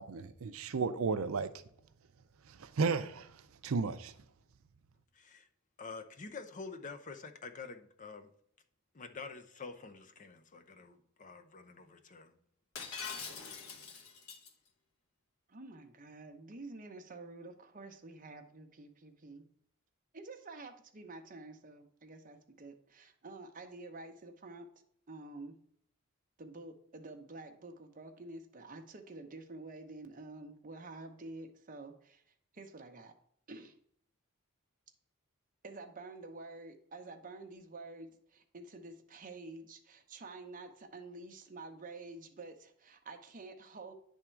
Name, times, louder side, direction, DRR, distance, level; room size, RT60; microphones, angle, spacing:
voice 1, 0.0-1.5 2.5-4.1, right 4 dB, 70° right, 0.5 m, -34 dB
voice 2, 5.1-5.5 5.8-8.3 8.9-12.3, left 4 dB, 35° left, 0.6 m, -47 dB
Shatter, 12.8-14.5, left 5 dB, 90° left, 1.0 m, -43 dB
voice 3, 15.5-19.4 20.1-24.7 25.1-25.6 26.4-32.2 32.5-33.1 33.5-33.7 35.6-43.9, right 2 dB, 40° right, 0.9 m, -49 dB
9.9 x 3.6 x 4.5 m
head